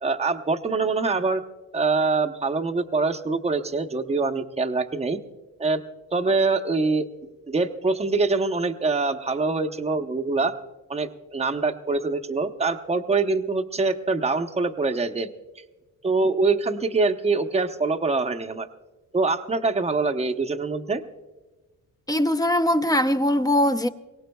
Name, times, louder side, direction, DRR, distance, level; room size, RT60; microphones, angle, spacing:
voice 1, 0.0-1.4 1.7-5.2 5.6-5.8 6.1-7.0 7.5-10.6 10.9-15.3 16.0-18.7 19.1-21.0, right 3 dB, 20° right, 0.8 m, -24 dB
voice 2, 22.1-23.9, left 1 dB, 10° left, 0.7 m, -21 dB
22.5 x 18.0 x 2.3 m
cardioid pair, 90°, 35 cm